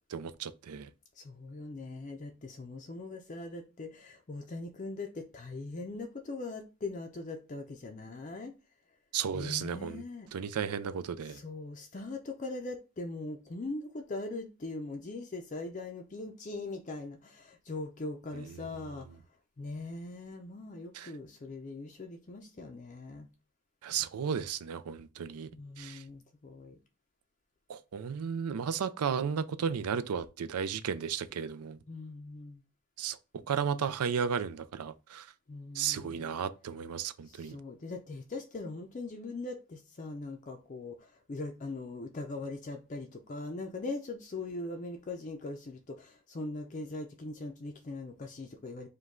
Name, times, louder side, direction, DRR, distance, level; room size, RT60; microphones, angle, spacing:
voice 1, 0.1-0.9 9.1-10.0 10.3-11.4 18.3-18.7 20.9-21.1 23.8-25.5 25.8-26.0 27.7-31.8 33.0-33.2 33.5-35.3 35.7-37.6, right 7 dB, 90° right, 0.4 m, -34 dB
voice 2, 1.2-8.5 9.3-10.3 11.2-19.1 19.6-23.3 25.5-26.8 31.9-32.6 35.5-36.4 37.2-48.9, left 2 dB, 35° left, 0.4 m, -41 dB
5.1 x 2.2 x 3.6 m
head